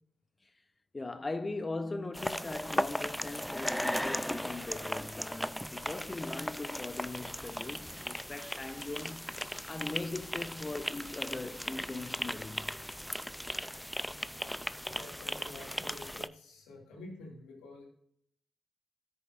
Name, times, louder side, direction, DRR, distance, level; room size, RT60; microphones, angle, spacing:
voice 1, 0.9-9.4 9.7-12.8, left 2 dB, 30° left, 0.8 m, -40 dB
sound 1, 2.1-16.3, equal, 5° left, 0.5 m, -37 dB
voice 2, 14.9-17.9, left 1 dB, 85° left, 2.4 m, -49 dB
13.5 x 6.5 x 2.6 m
supercardioid pair, 45°, 0 cm